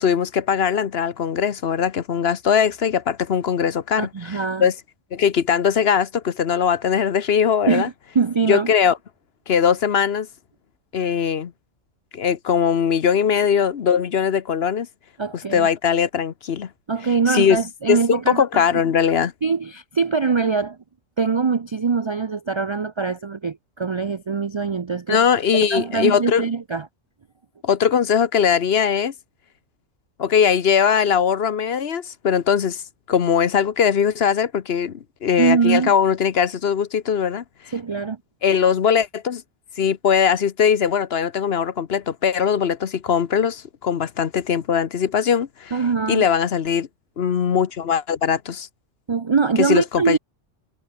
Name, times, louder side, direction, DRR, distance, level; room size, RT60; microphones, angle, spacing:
voice 1, 0.0-4.7 5.1-7.9 8.5-9.0 9.5-10.3 10.9-11.5 12.1-14.9 15.5-16.7 17.3-17.6 17.9-19.3 25.1-26.4 27.6-29.1 30.2-32.8 33.1-37.4 38.4-39.4 39.8-45.8 46.1-46.9 47.2-48.7 49.6-50.2, left 7 dB, 55° left, 1.1 m, -20 dB
voice 2, 4.0-4.7 7.7-8.7 15.2-15.7 16.9-18.6 19.4-20.8 21.2-25.2 25.5-26.9 35.4-35.9 37.7-38.2 45.7-46.2 49.1-50.2, right 5 dB, 45° right, 0.3 m, -22 dB
omnidirectional pair, 1.3 m